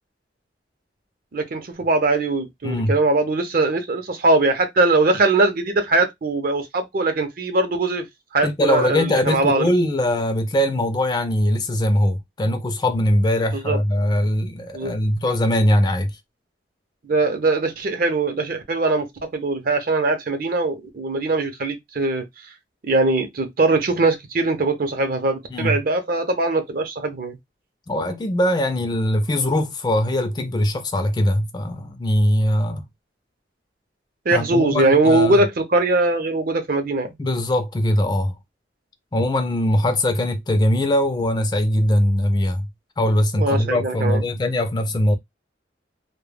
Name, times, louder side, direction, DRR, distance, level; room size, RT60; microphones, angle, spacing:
voice 1, 1.3-8.1 8.3-9.7 13.5-13.8 14.7-14.9 17.0-19.1 19.3-22.2 22.8-27.4 34.3-37.1 43.4-44.2, right 2 dB, 50° right, 0.5 m, -21 dB
voice 2, 2.6-2.9 8.4-16.1 25.5-25.8 27.9-32.8 34.3-35.4 37.2-38.3 39.1-42.7 43.0-45.2, left 1 dB, 25° left, 0.3 m, -21 dB
2.2 x 2.0 x 3.2 m
head